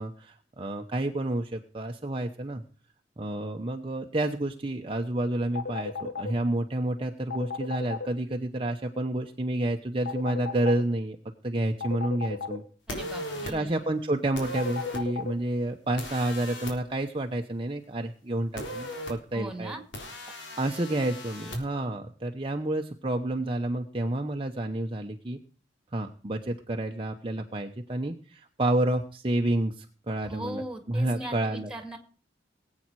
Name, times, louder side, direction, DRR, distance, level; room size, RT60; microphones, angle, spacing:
voice 1, 0.0-2.6 3.2-11.2 11.4-12.6 13.5-19.7 20.6-25.4 25.9-30.6 30.9-31.7, right 1 dB, 30° right, 3 dB, 0.9 m, -29 dB
sound 1, 5.6-6.3 7.3-8.1 10.1-10.8 11.8-12.6 14.6-15.3, left 5 dB, 55° left, 1.7 m, -33 dB
sound 2, 12.9-13.5 14.4-15.0 16.0-16.7 18.6-19.1 19.9-21.6, left 1 dB, 85° left, 3.7 m, -37 dB
voice 2, 12.9-13.8 19.3-19.8 30.2-32.0, right 1 dB, 5° right, 5 dB, 2.2 m, -39 dB
19.5 x 8.6 x 4.7 m, 0.42 s
head